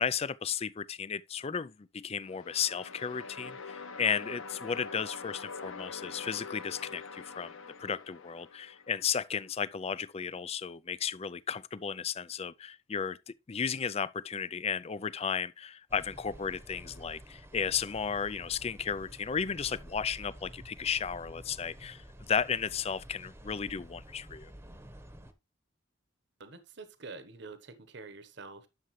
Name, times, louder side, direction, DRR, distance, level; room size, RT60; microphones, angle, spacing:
voice 1, 0.0-7.5 7.8-24.5, left 7 dB, 30° left, 0.4 m, -34 dB
sound 1, 2.2-9.2, left 4 dB, 80° left, 1.1 m, -44 dB
sound 2, 15.9-25.3, right 1 dB, 10° right, 1.0 m, -50 dB
voice 2, 26.4-28.7, right 3 dB, 60° right, 1.2 m, -47 dB
11.5 x 6.8 x 3.2 m
head